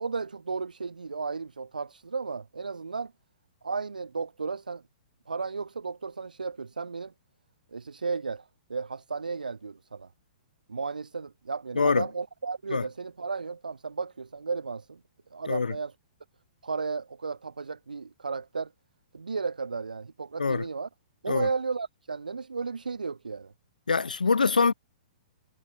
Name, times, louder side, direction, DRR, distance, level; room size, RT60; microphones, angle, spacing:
voice 1, 0.0-3.1 3.6-4.8 5.3-7.1 7.7-10.1 10.7-15.0 15.3-15.9 16.6-18.7 19.1-20.9 21.2-23.5, right 4 dB, 70° right, 4.9 m, -34 dB
voice 2, 23.9-24.7, left 4 dB, 70° left, 2.3 m, -24 dB
figure-of-eight pair, 115°, 5 cm